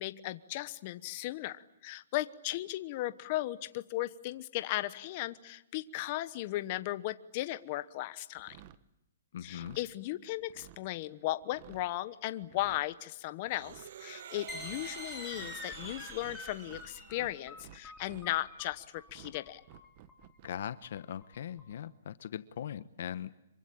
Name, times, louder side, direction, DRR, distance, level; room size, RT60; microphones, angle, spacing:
voice 1, 0.0-8.6 9.4-19.6, left 16 dB, 35° left, 13 dB, 1.1 m, -36 dB
sound 1, 8.4-8.8 9.4-9.8 10.4-10.8 11.4-11.9 12.4-12.8 13.5-13.9 14.5-14.9 15.3-16.9 17.1-18.3 19.1-19.3 19.6-20.5, right 12 dB, 40° right, 1.2 m, -54 dB
voice 2, 9.3-9.8 20.4-23.3, left 9 dB, 60° left, 14 dB, 1.0 m, -40 dB
sound 2, 13.5-17.6, right 9 dB, 55° right, 1.5 m, -48 dB
sound 3, 14.5-21.7, left 4 dB, 5° left, 3.6 m, -47 dB
26.5 x 24.0 x 8.7 m, 0.88 s
hypercardioid pair, 155°, 0 cm